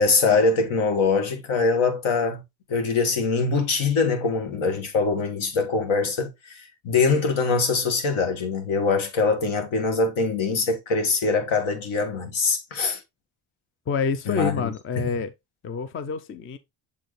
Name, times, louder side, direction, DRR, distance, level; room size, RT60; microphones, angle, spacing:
voice 1, 0.0-2.4 2.7-13.0 14.2-14.6 15.0-15.1, left 4 dB, 70° left, 1.7 m, -23 dB
voice 2, 13.9-15.3 15.6-16.6, left 5 dB, 30° left, 0.3 m, -27 dB
7.2 x 4.5 x 3.1 m
cardioid pair, 175°, 49 cm